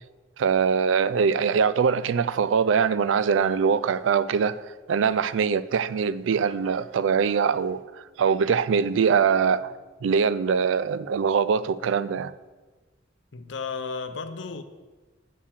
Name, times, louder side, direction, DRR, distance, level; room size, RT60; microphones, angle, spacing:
voice 1, 0.4-4.6 4.9-9.7 10.0-12.3, right 6 dB, 80° right, 0.4 m, -23 dB
voice 2, 13.3-14.6, left 4 dB, 70° left, 0.6 m, -33 dB
7.2 x 6.4 x 7.3 m
head